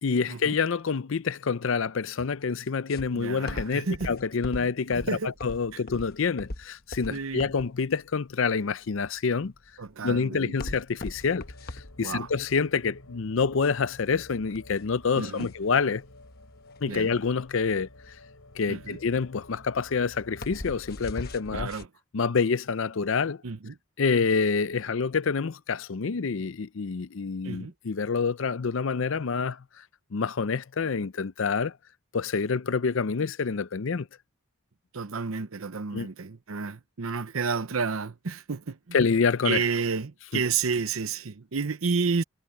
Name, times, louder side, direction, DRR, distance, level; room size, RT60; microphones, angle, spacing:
voice 1, 0.0-9.5 10.0-11.5 12.0-16.0 16.8-17.9 18.6-21.7 22.1-23.4 24.0-29.6 30.1-31.7 32.1-34.1 35.9-36.1 38.9-39.6 40.3-40.4, left 5 dB, 65° left, 0.5 m, -27 dB
sound 1, 2.9-21.9, left 2 dB, 45° left, 1.1 m, -41 dB
voice 2, 3.1-4.1 4.6-4.7 4.9-5.3 7.1-7.5 9.8-10.5 12.0-12.3 15.2-15.5 16.9-17.1 18.7-19.0 21.5-21.9 23.4-23.8 27.4-27.7 34.9-39.0 39.4-42.2, right 5 dB, 80° right, 0.8 m, -31 dB
sound 2, 10.9-21.6, left 1 dB, 85° left, 5.4 m, -51 dB
head